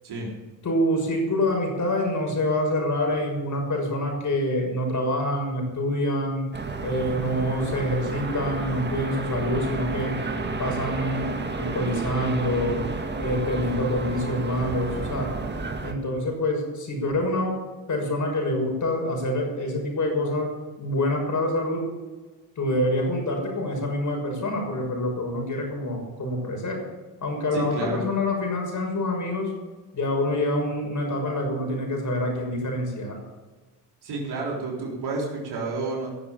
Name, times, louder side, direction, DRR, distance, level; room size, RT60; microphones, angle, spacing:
voice 1, 0.6-6.5 6.8-10.2 10.6-12.8 13.2-15.3 15.8-17.6 17.9-20.5 20.8-21.9 22.6-26.8 27.2-29.5 29.9-33.2, left 1 dB, 45° left, 2 dB, 6.3 m, -26 dB
sound 1, 6.5-15.9, right 3 dB, 25° right, 2.1 m, -31 dB
voice 2, 27.5-28.0 34.0-36.1, right 2 dB, 65° right, -2 dB, 4.1 m, -30 dB
16.5 x 7.2 x 8.9 m, 1.3 s
supercardioid pair, 75°, 41 cm